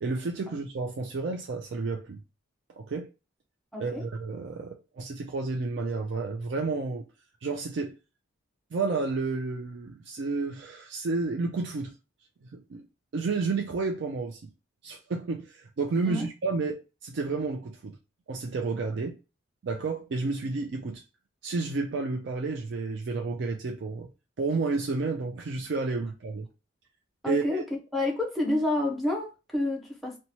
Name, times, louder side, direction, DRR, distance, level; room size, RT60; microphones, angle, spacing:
voice 1, 0.0-2.2 2.8-3.1 3.8-7.0 7.4-7.9 8.7-11.9 12.4-12.8 13.1-14.5 14.8-18.0 18.3-19.1 19.6-21.0 21.4-24.1 24.4-26.5 27.3-27.6, right 3 dB, 60° right, 0.4 m, -31 dB
voice 2, 3.7-4.0 16.0-16.3 27.2-27.6 27.9-30.2, left 2 dB, ahead, 0.6 m, -29 dB
2.9 x 2.2 x 2.7 m
head